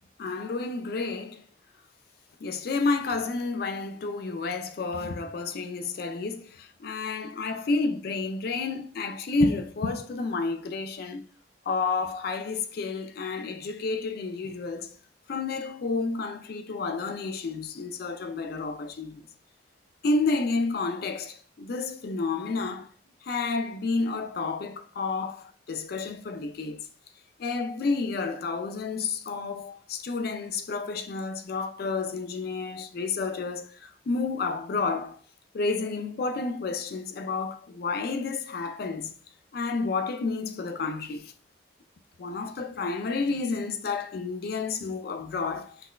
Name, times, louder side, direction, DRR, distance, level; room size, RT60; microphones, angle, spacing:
voice 1, 0.2-1.4 2.4-11.2 11.7-14.9 15.3-19.2 20.0-22.9 23.3-26.8 27.4-35.2 35.5-39.1 39.5-41.3 42.2-45.8, left 3 dB, 50° left, 0.3 m, -30 dB
5.7 x 2.1 x 2.3 m
head